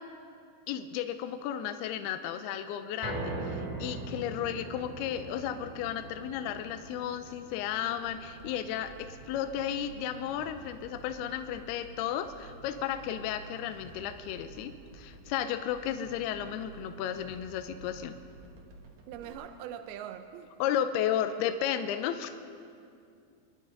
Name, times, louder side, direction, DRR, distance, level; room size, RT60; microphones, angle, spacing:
voice 1, 0.7-8.9 9.3-18.2 20.6-22.3, left 10 dB, 85° left, 8 dB, 2.5 m, -33 dB
sound 1, 3.0-15.3 15.7-15.8 16.2-16.3, right 2 dB, 25° right, 0.8 m, -43 dB
sound 2, 8.0-19.3, right 3 dB, 65° right, 1.9 m, -51 dB
voice 2, 19.1-20.5, right 9 dB, 80° right, 8 dB, 2.4 m, -42 dB
27.0 x 11.0 x 4.0 m, 2.4 s
omnidirectional pair, 4.8 m